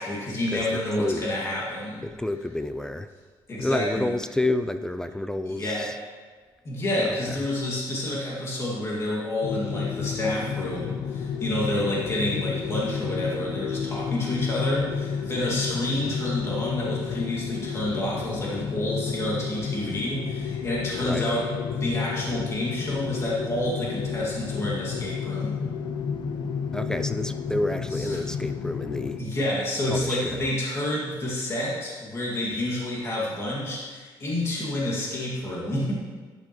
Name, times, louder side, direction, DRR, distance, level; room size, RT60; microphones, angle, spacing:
voice 1, 0.0-2.0 3.5-4.1 5.5-5.9 6.6-25.6 27.9-28.2 29.2-35.9, left 1 dB, 30° left, -5 dB, 2.2 m, -29 dB
voice 2, 2.0-3.1 3.6-6.0 7.0-7.4 21.0-21.3 26.7-29.2 29.9-30.5, left 1 dB, 5° left, 10 dB, 0.3 m, -29 dB
sound 1, 9.4-29.2, left 6 dB, 60° left, 0.7 m, -31 dB
11.5 x 9.9 x 3.1 m, 1.5 s
cardioid pair, 135°, 9 cm